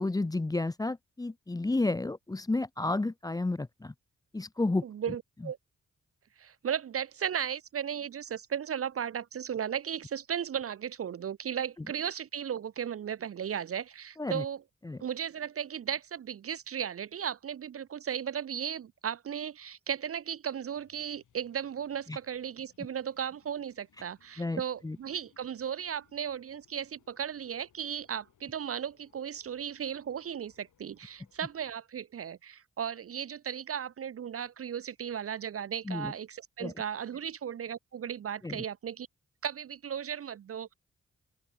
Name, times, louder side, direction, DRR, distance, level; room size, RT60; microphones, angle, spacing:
voice 1, 0.0-3.9 4.3-4.8 14.2-14.4 14.8-15.0 22.1-22.2 24.4-25.0 35.9-36.1 36.6-36.7 38.4-38.6, left 2 dB, 10° left, 0.6 m, -31 dB
voice 2, 4.8-5.6 6.4-14.6 15.0-39.1 39.4-40.7, right 8 dB, 50° right, 0.5 m, -36 dB
sound 1, 20.7-31.8, left 9 dB, 85° left, 4.1 m, -69 dB
open air
cardioid pair, 55°, 30 cm